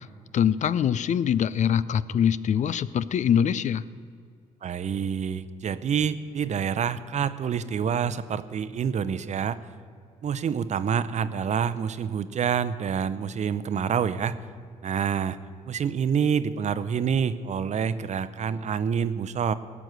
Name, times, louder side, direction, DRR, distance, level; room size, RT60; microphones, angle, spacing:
voice 1, 0.3-3.8, left 8 dB, 50° left, 17 dB, 0.4 m, -23 dB
voice 2, 4.6-9.6 10.2-14.4 14.8-15.4 15.7-19.5, right 7 dB, 45° right, 14 dB, 0.7 m, -27 dB
17.0 x 6.1 x 8.0 m, 2.2 s
supercardioid pair, 60°, 16 cm